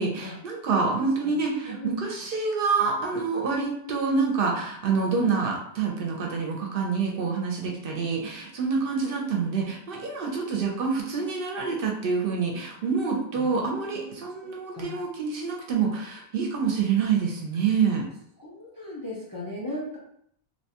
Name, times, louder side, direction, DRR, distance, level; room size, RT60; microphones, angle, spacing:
voice 1, 0.0-18.1, right 5 dB, 65° right, 0 dB, 0.7 m, -27 dB
voice 2, 0.7-1.4 1.7-2.1 13.3-14.2 14.7-14.9 18.4-20.0, left 1 dB, 30° left, -5 dB, 0.4 m, -38 dB
2.9 x 2.2 x 2.7 m, 0.70 s
omnidirectional pair, 1.1 m